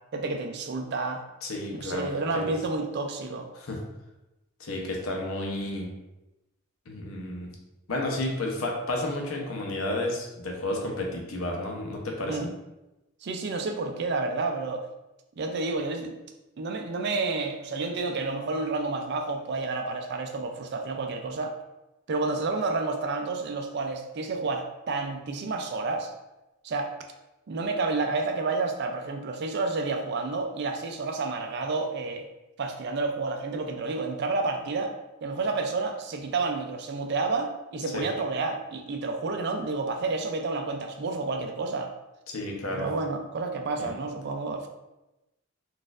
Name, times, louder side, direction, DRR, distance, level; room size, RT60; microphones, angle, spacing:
voice 1, 0.1-1.2 1.7-3.5 12.3-12.5 13.2-14.8 15.4-16.2 16.6-21.6 22.1-26.1 26.6-26.9 27.5-32.3 32.6-34.9 35.2-41.9 42.7-44.7, right 3 dB, 55° right, 4 dB, 0.4 m, -30 dB
voice 2, 1.4-2.1 2.3-2.5 3.6-3.8 4.6-5.9 6.9-7.5 7.9-12.5 37.9-38.0 42.3-42.9 43.8-43.9, left 1 dB, 85° left, 0 dB, 0.7 m, -31 dB
4.1 x 2.5 x 2.4 m, 0.98 s
head